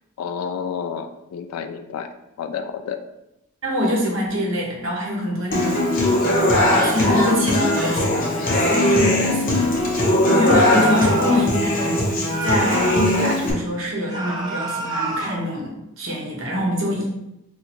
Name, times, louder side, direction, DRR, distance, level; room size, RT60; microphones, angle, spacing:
voice 1, 0.2-2.1 2.4-3.0 10.7-11.1, left 7 dB, 85° left, 7 dB, 0.3 m, -29 dB
voice 2, 3.6-6.2 6.7-9.7 10.3-17.1, equal, 60° right, -2 dB, 0.9 m, -25 dB
Human voice / Acoustic guitar, 5.5-13.5, left 1 dB, 40° left, 0.7 m, -19 dB
sound 1, 10.4-11.5 12.2-13.4 14.1-15.4, right 2 dB, 20° right, 0.5 m, -28 dB
2.7 x 2.4 x 4.2 m, 0.88 s
head